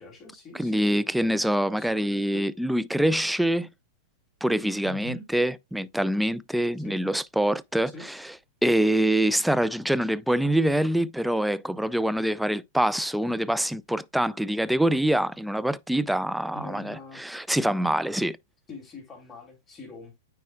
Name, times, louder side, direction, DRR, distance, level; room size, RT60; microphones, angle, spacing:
voice 1, 0.0-1.4 1.7-2.5 4.8-5.3 6.8-7.0 7.9-8.1 16.5-17.2 18.7-20.2, left 2 dB, 20° left, 3.0 m, -43 dB
voice 2, 0.5-3.7 4.4-8.2 8.6-18.4, right 1 dB, ahead, 0.4 m, -25 dB
9.2 x 4.7 x 2.4 m
hypercardioid pair, 115°, 0 cm